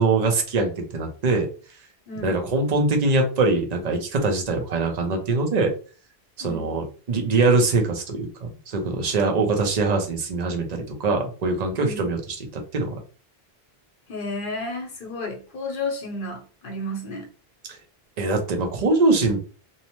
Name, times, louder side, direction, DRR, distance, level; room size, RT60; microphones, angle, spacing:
voice 1, 0.0-1.5 2.2-5.7 6.4-13.0 18.2-19.4, right 3 dB, 45° right, 0.6 m, -23 dB
voice 2, 6.4-6.7 11.8-12.1 14.1-17.3, left 2 dB, 55° left, 0.9 m, -32 dB
2.7 x 2.0 x 2.9 m
omnidirectional pair, 1.1 m